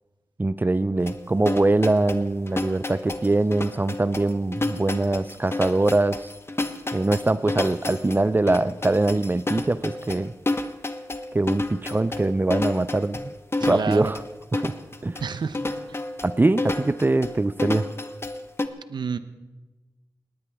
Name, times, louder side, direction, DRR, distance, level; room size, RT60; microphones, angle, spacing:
voice 1, 0.4-6.3 6.9-10.3 11.3-13.3 13.6-14.2 14.5-14.7 15.0-15.2 16.2-17.9, right 2 dB, 25° right, 15 dB, 0.5 m, -23 dB
sound 1, 1.1-18.7, left 2 dB, 35° left, 1.1 m, -30 dB
voice 2, 13.6-14.1 15.2-15.6 15.9-16.0 18.9-19.2, right 5 dB, 85° right, 12 dB, 0.8 m, -29 dB
19.5 x 18.5 x 3.5 m, 1.1 s
wide cardioid pair, 65°, 7 cm